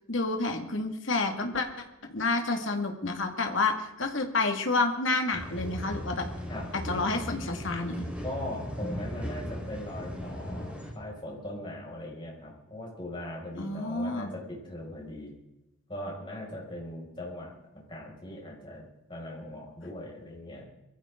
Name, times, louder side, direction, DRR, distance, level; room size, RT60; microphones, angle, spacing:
voice 1, 0.1-1.7 2.1-6.2 6.7-8.1 13.6-14.3, left 3 dB, 65° left, 4 dB, 2.3 m, -29 dB
sound 1, 5.3-10.9, equal, 5° right, 4.4 m, -37 dB
voice 2, 8.2-15.3 15.9-17.5 17.9-18.8 19.1-20.6, left 1 dB, 25° left, -4 dB, 6.3 m, -40 dB
23.0 x 15.0 x 3.9 m, 0.91 s
head